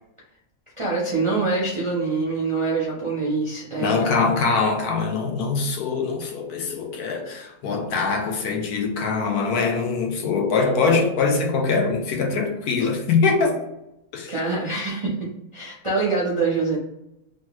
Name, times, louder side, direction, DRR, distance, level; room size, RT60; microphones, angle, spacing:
voice 1, 0.8-4.0 14.3-16.8, right 3 dB, 40° right, 0.4 m, -25 dB
voice 2, 3.8-13.6 14.1-14.3, left 4 dB, 80° left, 1.1 m, -23 dB
3.2 x 2.3 x 2.9 m
omnidirectional pair, 1.6 m